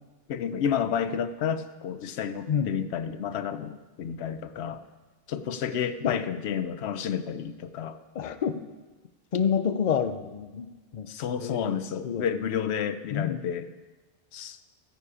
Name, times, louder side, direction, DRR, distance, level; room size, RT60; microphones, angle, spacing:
voice 1, 0.3-4.8 5.3-8.0 11.1-13.7 14.3-14.6, left 8 dB, 85° left, 11 dB, 0.9 m, -30 dB
voice 2, 8.1-8.6 9.3-10.7 10.9-11.1 11.4-12.3 13.1-13.4, left 7 dB, 50° left, 11 dB, 0.7 m, -28 dB
14.0 x 9.8 x 4.8 m, 1.3 s
omnidirectional pair, 1.1 m